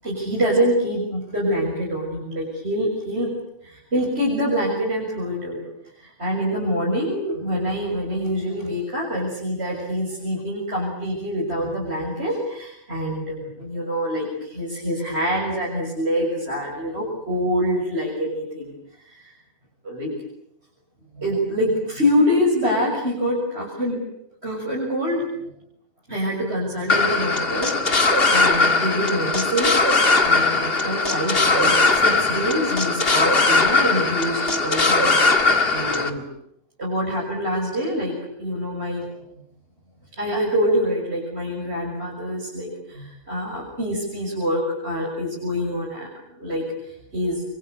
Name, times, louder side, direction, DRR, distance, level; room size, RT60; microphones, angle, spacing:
voice 1, 0.0-3.3 3.6-5.6 6.0-18.7 19.1-19.3 19.8-20.1 21.1-24.0 24.4-25.3 26.1-35.1 35.7-36.2 36.8-39.0 40.2-46.1 46.4-47.4, equal, 50° right, -3 dB, 6.9 m, -25 dB
sound 1, 26.9-36.1, left 3 dB, 45° left, 2.2 m, -19 dB
28.0 x 24.0 x 8.2 m, 0.75 s
omnidirectional pair, 1.4 m